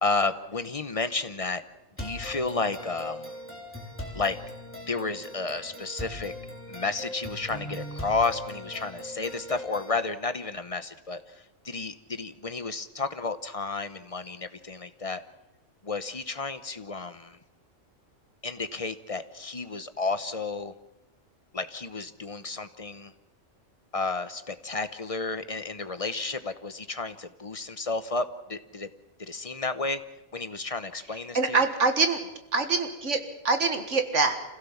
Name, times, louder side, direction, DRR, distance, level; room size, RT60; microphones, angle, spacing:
voice 1, 0.0-1.6 2.0-3.3 4.1-4.4 4.9-6.3 6.7-15.2 15.8-17.4 18.4-20.7 21.5-23.1 23.9-28.9 29.3-30.0 30.3-31.6, left 3 dB, 30° left, 11 dB, 0.8 m, -32 dB
sound 1, 2.0-10.0, left 1 dB, 10° left, 3.6 m, -40 dB
voice 2, 31.3-32.2 32.5-34.4, right 4 dB, 65° right, 7 dB, 2.0 m, -24 dB
26.5 x 16.5 x 7.2 m, 0.97 s
omnidirectional pair, 1.4 m